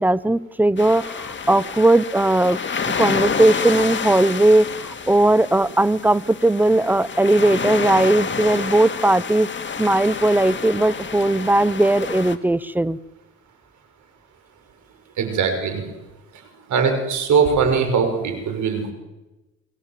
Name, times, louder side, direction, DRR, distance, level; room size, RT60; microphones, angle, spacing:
voice 1, 0.0-9.5 9.8-13.0, right 1 dB, 5° right, 18 dB, 0.8 m, -18 dB
sound 1, 0.8-12.4, left 6 dB, 40° left, 2.3 m, -29 dB
voice 2, 15.2-15.8 16.7-18.9, right 5 dB, 75° right, 6 dB, 6.2 m, -20 dB
28.5 x 20.5 x 7.6 m, 1.0 s
cardioid pair, 90°, 30 cm